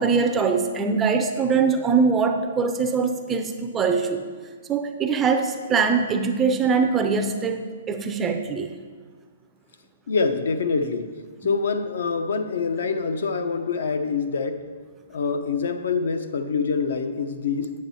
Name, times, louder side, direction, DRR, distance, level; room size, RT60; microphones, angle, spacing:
voice 1, 0.0-4.2 4.7-8.7, right 5 dB, 10° right, 6 dB, 0.4 m, -22 dB
voice 2, 10.1-11.1 11.4-14.6 15.1-17.7, left 5 dB, 70° left, 9 dB, 0.7 m, -25 dB
8.5 x 6.2 x 4.1 m, 1.5 s
hypercardioid pair, 175°, 0 cm